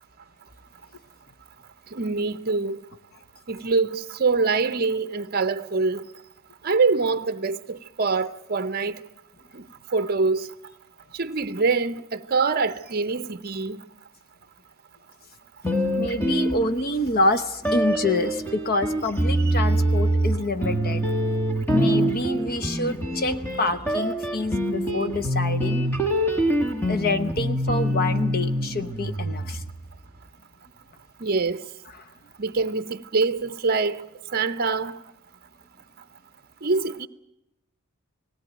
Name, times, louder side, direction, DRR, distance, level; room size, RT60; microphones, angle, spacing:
voice 1, 1.9-2.8 3.5-6.0 6.6-9.0 9.9-10.5 11.1-13.8 31.2-31.6 32.4-34.0 34.3-35.0 36.6-37.1, right 4 dB, 45° right, 0.7 m, -24 dB
sound 1, 15.6-17.1 17.6-29.9, right 1 dB, 10° left, 1.5 m, -25 dB
voice 2, 16.0-21.0 21.7-25.9 26.9-29.6 31.9-32.1, left 2 dB, 40° left, 0.9 m, -27 dB
19.0 x 18.0 x 9.1 m
head